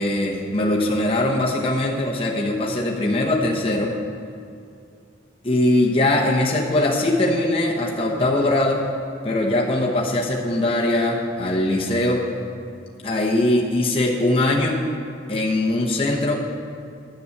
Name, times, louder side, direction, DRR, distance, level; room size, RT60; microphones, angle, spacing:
voice 1, 0.0-3.9 5.4-8.9 9.2-12.2 13.0-14.8 15.3-16.4, left 1 dB, 30° left, -2 dB, 1.0 m, -21 dB
9.9 x 7.9 x 6.7 m, 2.4 s
head